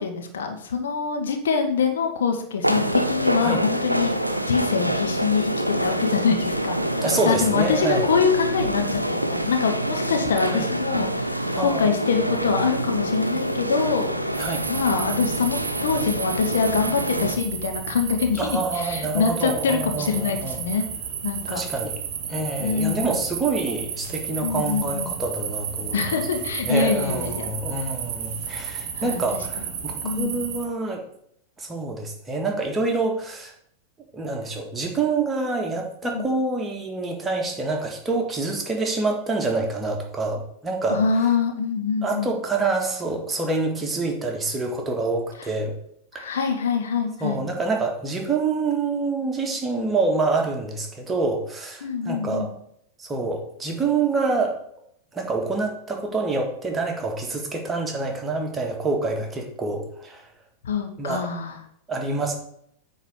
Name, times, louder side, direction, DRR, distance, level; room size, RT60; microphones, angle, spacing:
voice 1, 0.0-6.8 7.2-14.1 14.3-20.9 21.2-21.6 22.6-23.2 24.4-25.1 25.9-27.5 28.9-29.2 29.6-29.7 30.0-30.5 36.1-36.3 40.9-42.3 46.1-47.4 51.8-52.5 60.6-61.6, left 5 dB, 65° left, 5 dB, 1.3 m, -24 dB
sound 1, 2.6-17.4, right 1 dB, 90° right, 0.6 m, -26 dB
voice 2, 7.0-8.1 10.5-10.7 11.5-11.9 14.4-14.7 18.4-20.6 21.5-22.0 22.3-26.2 26.6-31.0 31.6-33.5 34.1-41.0 42.0-45.8 46.1-46.4 47.2-52.5 53.0-54.6 55.1-60.3 61.0-61.3 61.9-62.4, right 3 dB, 15° right, 2 dB, 1.8 m, -26 dB
sound 2, 14.3-30.7, right 7 dB, 45° right, 1.3 m, -33 dB
9.2 x 4.0 x 6.5 m, 0.69 s
figure-of-eight pair, 90°, 0 cm